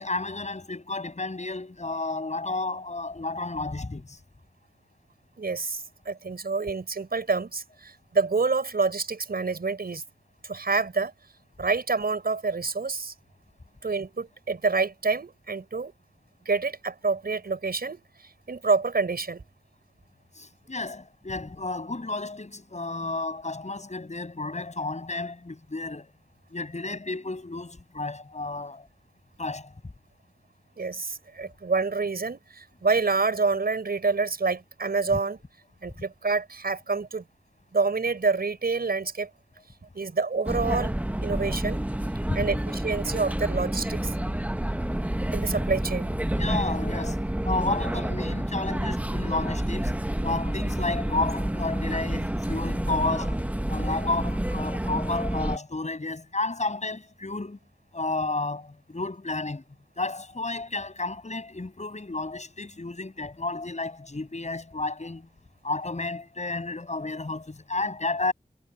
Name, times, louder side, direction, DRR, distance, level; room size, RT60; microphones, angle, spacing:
voice 1, 0.0-4.2 20.4-26.1 26.5-28.9 29.4-29.7 35.1-35.2 42.3-42.5 46.3-53.4 53.7-57.6 57.9-59.6 60.0-65.3 65.6-68.3, left 2 dB, 45° left, 7.4 m, -32 dB
voice 2, 5.4-10.0 10.4-11.1 11.6-13.1 13.8-15.9 16.5-18.0 18.5-19.4 30.8-35.4 35.8-37.2 37.7-39.3 39.9-40.9 41.2-41.8 42.3-44.1 45.3-46.1, right 4 dB, 75° right, 5.4 m, -27 dB
sound 1, 40.4-55.6, right 1 dB, 10° right, 0.9 m, -29 dB
wide cardioid pair, 65°, 16 cm